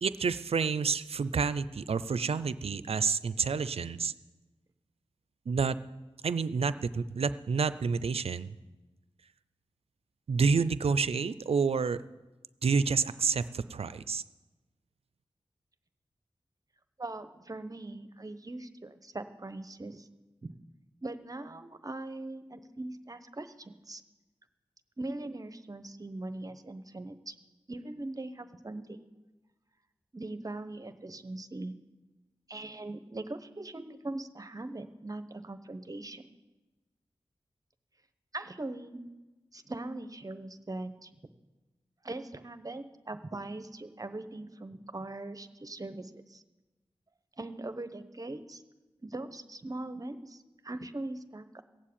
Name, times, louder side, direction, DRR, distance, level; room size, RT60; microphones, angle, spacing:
voice 1, 0.0-4.1 5.5-5.8 6.2-8.6 10.3-12.0 12.6-14.2, right 5 dB, 75° right, 15 dB, 0.5 m, -29 dB
voice 2, 17.0-20.1 20.4-20.5 21.0-24.0 25.0-27.3 27.7-29.0 30.1-31.8 32.5-36.3 38.3-39.0 39.5-41.1 42.0-46.4 47.4-48.6 49.0-51.6, right 2 dB, 35° right, 10 dB, 1.0 m, -41 dB
16.5 x 7.5 x 8.6 m, 1.1 s
wide cardioid pair, 60°, 10 cm